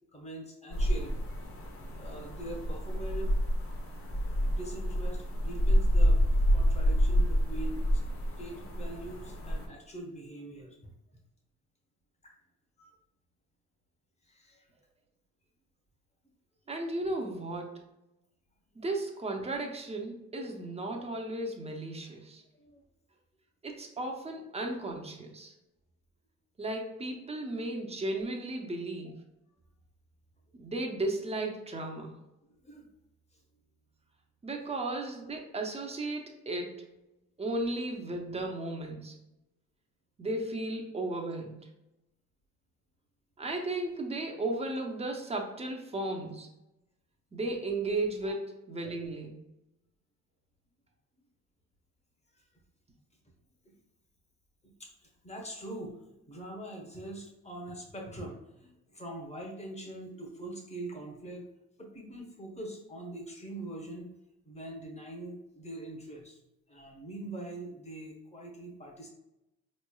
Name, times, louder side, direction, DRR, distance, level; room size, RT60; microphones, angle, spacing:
voice 1, 0.1-1.2 2.0-3.3 4.4-6.2 6.5-8.0 8.4-10.9 12.2-12.3 12.8-12.9 14.2-14.7 22.5-22.8 32.5-32.9 33.3-33.4 48.2-48.3 52.3-52.4 53.6-53.8 54.6-61.5 61.8-64.1 64.4-66.4 66.7-69.1, right 1 dB, 20° left, 0 dB, 1.1 m, -43 dB
sound 1, 0.7-9.7, equal, 45° left, 0.9 m, -28 dB
voice 2, 16.7-17.8 18.7-22.4 23.6-25.5 26.6-29.2 30.5-32.2 34.4-36.9 37.4-39.2 40.2-41.7 43.4-46.5 47.3-49.4, right 2 dB, 20° right, 2 dB, 0.7 m, -35 dB
4.3 x 3.2 x 2.2 m, 0.91 s
cardioid pair, 90°, 30 cm